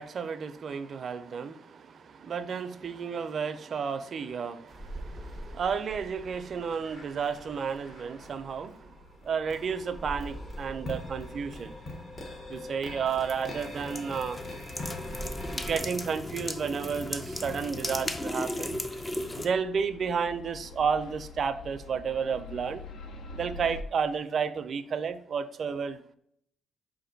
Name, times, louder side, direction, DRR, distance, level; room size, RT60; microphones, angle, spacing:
voice 1, 0.0-8.9 9.2-11.7 12.5-14.4 15.5-18.8 19.4-22.8 23.3-26.1, right 6 dB, 50° right, 10 dB, 0.4 m, -32 dB
sound 1, 4.7-15.8, left 1 dB, 35° left, 0.9 m, -42 dB
sound 2, 7.5-23.8, left 3 dB, 70° left, 0.5 m, -49 dB
sound 3, 13.1-19.5, left 1 dB, 20° left, 0.4 m, -36 dB
5.1 x 2.6 x 3.9 m, 0.71 s
cardioid pair, 90°, 0 cm